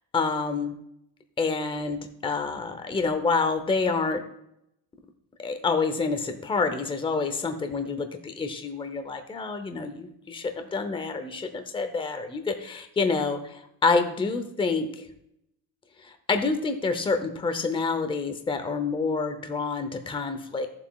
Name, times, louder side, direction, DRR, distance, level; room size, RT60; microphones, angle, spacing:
voice 1, 0.1-0.7 1.4-2.0 2.2-4.2 5.4-15.0 16.0-20.7, left 4 dB, 10° left, 7 dB, 0.7 m, -27 dB
14.5 x 7.2 x 2.4 m, 0.79 s
cardioid pair, 145°, 46 cm